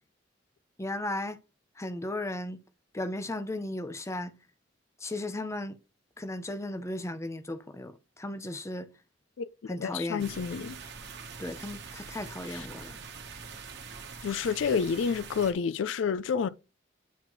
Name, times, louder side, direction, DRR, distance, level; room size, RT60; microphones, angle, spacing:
voice 1, 0.8-1.4 1.8-2.6 2.9-4.3 5.0-5.8 6.2-8.9 9.7-10.4 11.4-13.0, left 1 dB, 15° left, 0.6 m, -35 dB
voice 2, 9.4-10.8 12.5-12.7 14.2-16.5, left 6 dB, 75° left, 0.4 m, -29 dB
sound 1, 10.2-15.5, right 5 dB, 60° right, 1.2 m, -44 dB
9.2 x 3.8 x 3.1 m
head